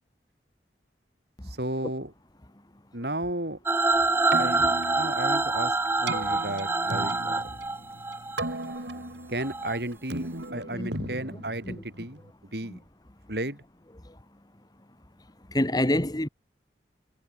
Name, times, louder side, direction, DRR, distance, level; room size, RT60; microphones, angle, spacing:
voice 1, 1.5-2.1 2.9-3.6 4.4-5.7 6.0-7.5 9.3-12.2 12.5-12.8 13.3-13.6, right 1 dB, 60° right, 6.8 m, -33 dB
sound 1, 3.7-8.8 9.4-9.8, right 2 dB, 15° right, 0.7 m, -26 dB
Keyboard (musical), 4.1-12.3, right 2 dB, 80° right, 4.9 m, -37 dB
voice 2, 10.6-11.8 12.7-12.8 14.0-14.2 15.5-16.3, left 1 dB, 20° left, 1.8 m, -29 dB
head